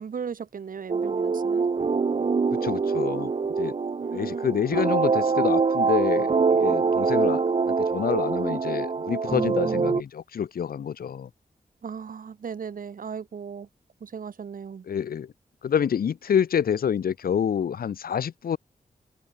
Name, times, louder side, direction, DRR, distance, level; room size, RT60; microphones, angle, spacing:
voice 1, 0.0-1.7 4.0-4.6 11.8-13.7 14.0-14.8, right 6 dB, 65° right, 0.9 m, -37 dB
sound 1, 0.9-10.0, right 5 dB, 40° right, 0.7 m, -24 dB
voice 2, 2.5-3.3 3.6-3.7 4.1-7.4 7.7-11.3 14.9-15.3 15.6-18.6, left 8 dB, 75° left, 0.6 m, -27 dB
wide cardioid pair, 75°, 16 cm